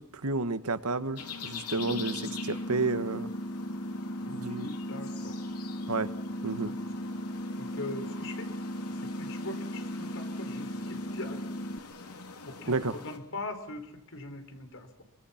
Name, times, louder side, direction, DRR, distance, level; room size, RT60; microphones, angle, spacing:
voice 1, 0.0-3.3 4.3-4.7 5.9-6.1 6.4-6.7 12.7-12.9, right 3 dB, 80° right, 12 dB, 1.5 m, -31 dB
sound 1, 1.1-13.2, left 5 dB, 90° left, 3.4 m, -45 dB
sound 2, 1.8-11.8, equal, 40° left, 0.9 m, -37 dB
voice 2, 4.2-5.4 6.7-6.8 7.6-8.5 9.0-11.4 12.5-14.9, left 2 dB, 60° left, 7 dB, 4.6 m, -41 dB
26.5 x 24.5 x 5.9 m, 0.81 s
head